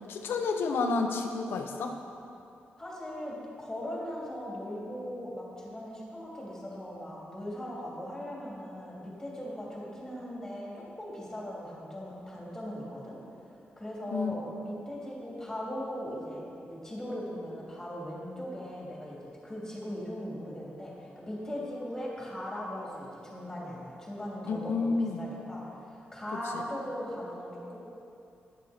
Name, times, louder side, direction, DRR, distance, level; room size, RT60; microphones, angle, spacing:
voice 1, 0.0-2.0 14.1-14.3 24.5-25.3 26.5-26.6, left 4 dB, 85° left, 4 dB, 0.9 m, -30 dB
voice 2, 2.8-13.2 13.8-24.9 25.2-27.8, equal, 10° left, -5 dB, 3.0 m, -39 dB
11.0 x 9.9 x 4.4 m, 2.6 s
wide cardioid pair, 135°, 4 cm